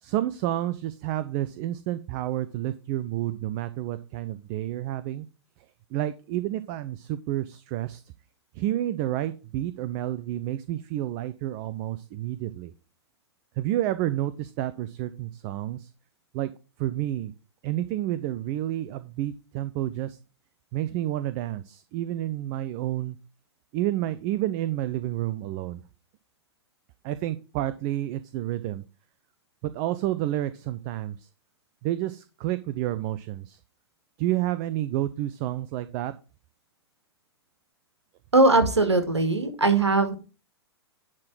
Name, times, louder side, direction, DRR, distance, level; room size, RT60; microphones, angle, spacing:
voice 1, 0.0-5.3 5.9-8.0 8.5-12.7 13.6-15.9 16.3-16.5 16.8-17.3 17.6-20.2 20.7-23.2 23.7-25.8 27.0-28.8 29.6-31.3 31.8-33.6 34.2-36.1, right 13 dB, 35° right, 13 dB, 0.6 m, -30 dB
voice 2, 38.3-40.1, right 2 dB, 80° right, 7 dB, 2.0 m, -20 dB
10.5 x 3.8 x 6.0 m, 0.33 s
figure-of-eight pair, 105°, 14 cm